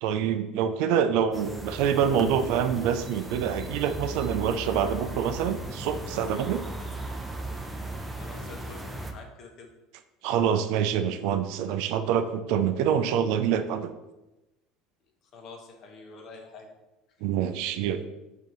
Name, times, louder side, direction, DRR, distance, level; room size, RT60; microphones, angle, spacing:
voice 1, 0.0-6.6 10.2-13.9 17.2-18.0, right 8 dB, 70° right, 9 dB, 0.3 m, -26 dB
sound 1, 1.3-9.1, right 1 dB, 10° right, 0.6 m, -37 dB
voice 2, 8.2-9.7 15.3-16.7, left 4 dB, 50° left, 3 dB, 0.9 m, -46 dB
4.6 x 2.8 x 3.8 m, 1.0 s
supercardioid pair, 100°, 0 cm